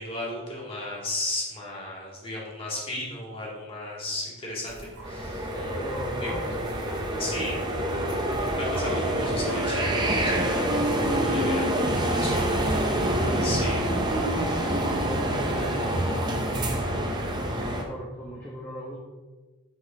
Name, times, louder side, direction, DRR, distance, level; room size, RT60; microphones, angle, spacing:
voice 1, 0.0-5.5 6.2-6.3 7.2-7.6 8.6-10.0 10.4-10.7 11.1-12.5 13.4-13.8, left 1 dB, 25° left, -5 dB, 2.0 m, -34 dB
sound 1, 4.7-16.3, right 2 dB, 60° right, 2.1 m, -44 dB
sound 2, 5.0-17.8, right 1 dB, 20° right, 0.7 m, -26 dB
voice 2, 5.5-6.5 14.7-16.8 17.4-19.0, equal, 10° left, -6 dB, 0.9 m, -38 dB
6.2 x 3.8 x 5.4 m, 1.3 s
head